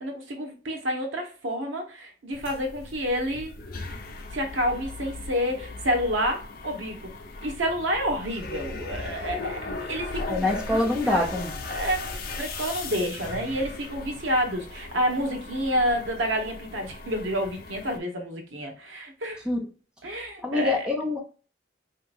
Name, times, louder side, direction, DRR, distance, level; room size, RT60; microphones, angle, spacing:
voice 1, 0.0-3.6 4.3-7.0 7.4-11.5 11.7-19.4 20.0-20.8, equal, 90° right, 0.9 m, -29 dB
sound 1, 2.3-18.0, left 3 dB, 50° left, 0.5 m, -38 dB
voice 2, 10.2-11.6 19.5-19.7 20.4-21.2, left 2 dB, 5° right, 0.5 m, -25 dB
3.4 x 2.8 x 2.3 m
head